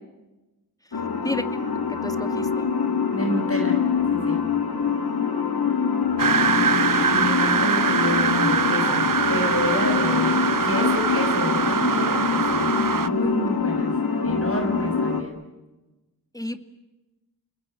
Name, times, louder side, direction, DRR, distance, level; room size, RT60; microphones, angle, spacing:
sound 1, 0.9-15.2, left 6 dB, 70° left, 3.1 m, -24 dB
voice 1, 1.9-2.7 9.7-9.8 16.3-16.6, left 1 dB, 10° left, 8 dB, 2.3 m, -32 dB
voice 2, 3.1-3.8 4.1-4.4 6.5-13.9 14.2-15.4, equal, 35° left, 3 dB, 6.6 m, -29 dB
sound 2, 6.2-13.1, right 6 dB, 55° right, 1.1 m, -23 dB
30.0 x 20.5 x 9.2 m, 1.1 s
wide cardioid pair, 60°, 38 cm